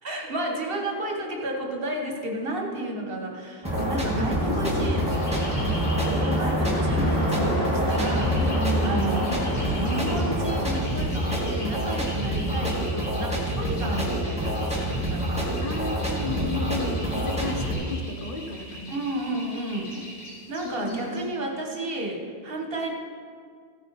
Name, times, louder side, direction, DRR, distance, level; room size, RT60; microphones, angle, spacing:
voice 1, 0.0-5.1 6.2-8.4 8.8-9.4 9.7-15.5 16.1-16.5 18.9-19.9 20.5-22.9, right 1 dB, 60° right, 1 dB, 1.7 m, -32 dB
sound 1, 3.6-17.7, right 1 dB, 5° right, 2.0 m, -28 dB
sound 2, 3.6-10.8, left 1 dB, 20° right, 2.6 m, -27 dB
voice 2, 3.8-4.9 5.3-5.4 7.0-7.7 8.5-9.5 15.6-19.0 19.8-20.0 20.6-21.2, left 2 dB, 50° left, 3 dB, 1.4 m, -34 dB
sound 3, 4.6-21.3, left 1 dB, 20° left, 3.8 m, -42 dB
15.0 x 9.7 x 4.2 m, 2.1 s
omnidirectional pair, 1.1 m